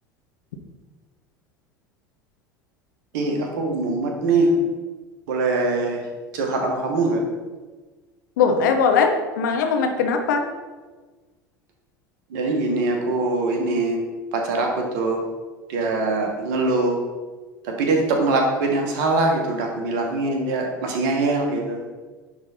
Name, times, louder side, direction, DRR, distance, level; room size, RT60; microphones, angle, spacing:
voice 1, 3.1-4.5 5.3-6.0 6.3-7.2 12.3-14.0 14.3-15.2 15.7-17.0 17.6-21.8, right 3 dB, 60° right, 2 dB, 1.5 m, -22 dB
voice 2, 8.4-10.4, left 5 dB, 65° left, 5 dB, 1.0 m, -20 dB
10.0 x 3.7 x 4.2 m, 1.3 s
figure-of-eight pair, 75°, 11 cm